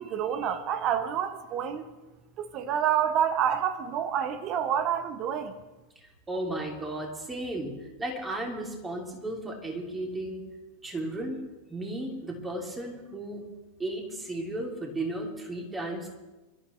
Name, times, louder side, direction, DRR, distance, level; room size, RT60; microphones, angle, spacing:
voice 1, 0.0-1.9 2.4-5.6, right 9 dB, 35° right, 1.0 m, -28 dB
voice 2, 5.9-10.4 10.8-11.4 11.7-13.4 13.8-16.1, right 1 dB, 15° right, 3.0 m, -34 dB
24.5 x 12.5 x 3.3 m
figure-of-eight pair, 90°, 0 cm